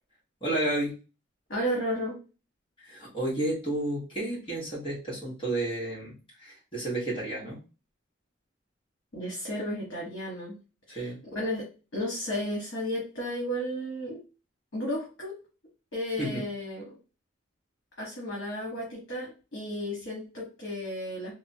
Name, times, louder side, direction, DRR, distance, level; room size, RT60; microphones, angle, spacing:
voice 1, 0.4-1.0 2.8-7.6 10.9-11.2 16.2-16.4, right 1 dB, 25° left, -5 dB, 1.1 m, -31 dB
voice 2, 1.5-2.1 9.1-10.6 10.9-11.6 11.9-14.2 14.7-15.4 15.9-16.8 18.0-21.3, equal, 65° left, -3 dB, 1.1 m, -33 dB
3.5 x 2.1 x 2.7 m, 0.32 s
head